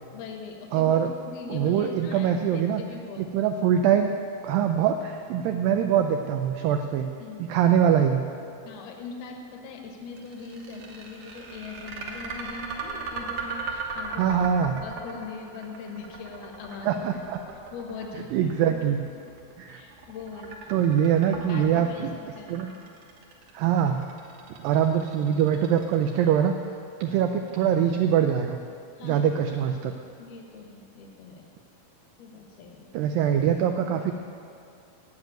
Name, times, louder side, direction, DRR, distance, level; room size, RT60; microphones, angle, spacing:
voice 1, 0.1-3.2 6.6-6.8 7.2-7.5 8.6-14.3 14.8-17.0 17.7-18.5 19.7-20.9 21.3-22.6 29.0-29.2 30.2-31.5 32.2-32.9, left 4 dB, 75° left, 2 dB, 3.0 m, -41 dB
voice 2, 0.7-1.1 1.5-2.8 3.2-4.1 4.4-7.1 7.5-8.2 14.2-14.8 16.8-17.4 18.3-19.0 19.6-19.8 20.7-22.1 22.5-22.7 23.5-24.0 24.6-26.6 27.0-28.6 29.0-29.9 32.9-34.1, right 9 dB, 85° right, 5 dB, 2.0 m, -23 dB
sound 1, 10.2-26.3, right 4 dB, 60° right, 2.3 m, -38 dB
9.7 x 7.9 x 9.2 m, 2.4 s
omnidirectional pair, 4.6 m